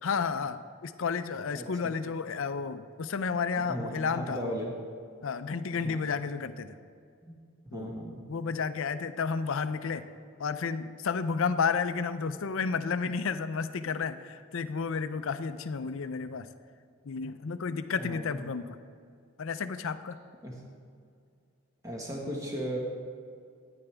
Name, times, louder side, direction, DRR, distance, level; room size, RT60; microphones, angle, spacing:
voice 1, 0.0-4.6 5.2-6.7 7.7-8.0 8.3-10.0 10.4-16.5 17.0-18.8 19.4-20.2, left 5 dB, 60° left, 12 dB, 0.5 m, -32 dB
voice 2, 1.5-1.9 3.6-4.8 5.8-6.0 7.2-7.4 7.6-8.3 17.9-18.4 20.4-20.6 21.8-22.8, equal, 15° right, -2 dB, 1.4 m, -37 dB
13.5 x 9.9 x 3.4 m, 2.3 s
head